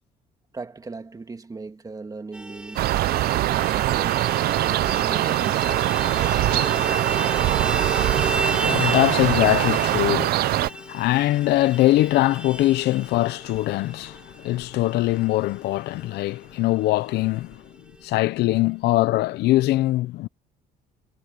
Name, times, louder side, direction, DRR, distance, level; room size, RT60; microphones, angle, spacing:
voice 1, 0.5-4.2 4.6-7.2, right 3 dB, 20° right, 2.2 m, -39 dB
Vehicle horn car horn honking, 2.3-16.2 16.5-16.6 16.9-17.1 17.4-18.1, right 1 dB, 5° right, 3.7 m, -33 dB
sound 1, 2.8-10.7, right 15 dB, 65° right, 0.6 m, -22 dB
voice 2, 8.0-17.6 18.0-20.3, left 17 dB, 75° left, 0.7 m, -22 dB
cardioid pair, 110°, 17 cm